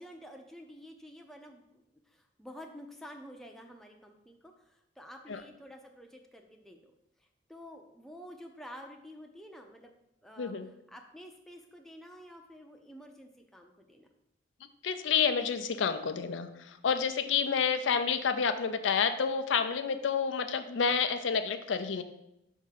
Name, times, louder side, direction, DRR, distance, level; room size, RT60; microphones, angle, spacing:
voice 1, 0.0-6.9 7.5-9.9 10.2-10.5 10.9-14.1, equal, ahead, 2 dB, 0.5 m, -50 dB
voice 2, 14.8-22.0, left 6 dB, 80° left, 9 dB, 0.5 m, -29 dB
5.4 x 3.6 x 5.7 m, 0.83 s
head